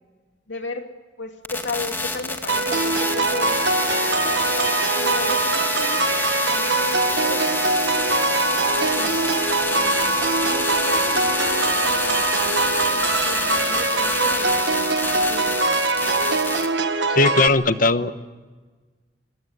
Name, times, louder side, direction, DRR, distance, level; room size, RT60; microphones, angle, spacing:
voice 1, 0.5-0.9 1.2-3.9 4.2-9.2 9.7-15.8, left 3 dB, 75° left, 5 dB, 2.8 m, -35 dB
sound 1, 1.4-16.7, left 2 dB, 10° left, 2.1 m, -27 dB
sound 2, 2.5-17.5, right 3 dB, 65° right, 1.4 m, -22 dB
voice 2, 17.1-18.1, left 3 dB, 45° left, 11 dB, 1.1 m, -18 dB
24.5 x 22.0 x 9.6 m, 1.4 s
head